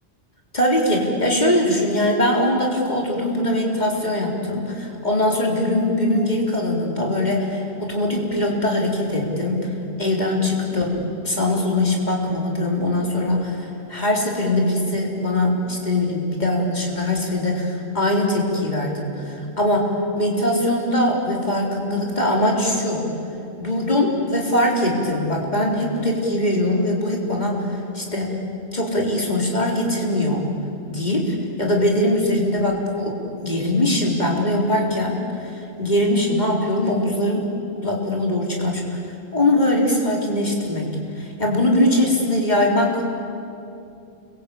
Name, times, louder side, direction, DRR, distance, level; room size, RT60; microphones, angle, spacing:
voice 1, 0.5-9.7 10.0-23.1 23.6-28.3 28.7-30.5 30.8-35.5 35.8-37.5 37.8-39.0 39.3-43.0, left 1 dB, 35° left, -1 dB, 4.2 m, -21 dB
29.0 x 23.0 x 8.6 m, 2.7 s
omnidirectional pair, 1.2 m